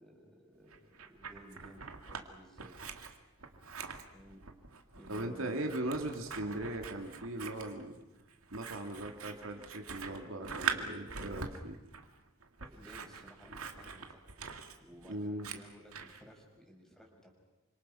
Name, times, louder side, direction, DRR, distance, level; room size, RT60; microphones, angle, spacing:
voice 1, 0.0-2.7 4.1-4.4 4.9-5.8 12.6-14.2 14.8-17.3, equal, ahead, 0 dB, 5.9 m, -56 dB
Scissors, 0.7-2.2 2.6-16.2, right 6 dB, 85° right, 2.2 m, -43 dB
voice 2, 5.1-8.0 8.5-11.8 15.1-15.5, right 1 dB, 65° right, 3 dB, 2.6 m, -39 dB
28.5 x 26.0 x 5.7 m, 1.1 s
head